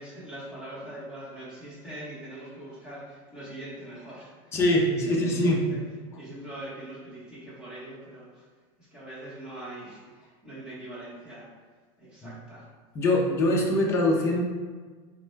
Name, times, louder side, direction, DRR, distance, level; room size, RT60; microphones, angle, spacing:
voice 1, 0.0-4.6 4.9-5.8 6.1-8.4 8.8-11.5 12.0-12.7, right 1 dB, 5° right, -10 dB, 0.9 m, -42 dB
voice 2, 4.5-5.6 12.2-12.3 13.0-14.4, left 1 dB, 20° left, -1 dB, 0.4 m, -23 dB
4.1 x 2.2 x 3.1 m, 1.4 s
supercardioid pair, 175°, 14 cm